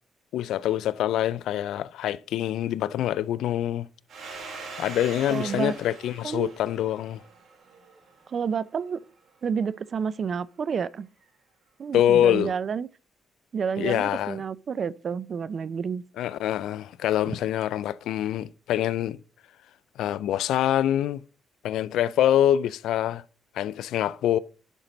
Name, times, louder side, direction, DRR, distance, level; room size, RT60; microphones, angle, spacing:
voice 1, 0.3-3.9 4.8-7.2 11.9-12.5 13.8-14.4 16.2-19.2 20.0-21.2 21.6-23.2 23.6-24.4, left 11 dB, 80° left, 0.4 m, -25 dB
Domestic sounds home sounds, 4.1-8.5, right 4 dB, 65° right, 3.1 m, -42 dB
voice 2, 5.3-5.7 6.2-6.5 8.3-9.0 9.4-11.1 11.8-12.9 13.5-16.0 17.3-17.4, right 6 dB, 50° right, 0.5 m, -29 dB
11.0 x 4.5 x 3.9 m
cardioid pair, 90°, 0 cm